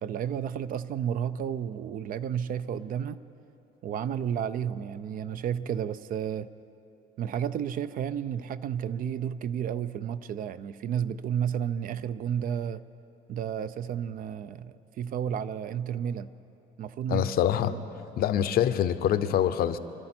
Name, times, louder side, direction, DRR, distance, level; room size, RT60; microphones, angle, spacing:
voice 1, 0.0-3.2 3.8-6.5 7.2-12.8 13.3-16.3 16.8-17.3 17.7-17.8, right 8 dB, 55° right, 0.5 m, -32 dB
voice 2, 17.1-17.7 18.2-19.8, left 10 dB, 65° left, 0.7 m, -25 dB
25.0 x 12.5 x 4.4 m
cardioid pair, 110°, 17 cm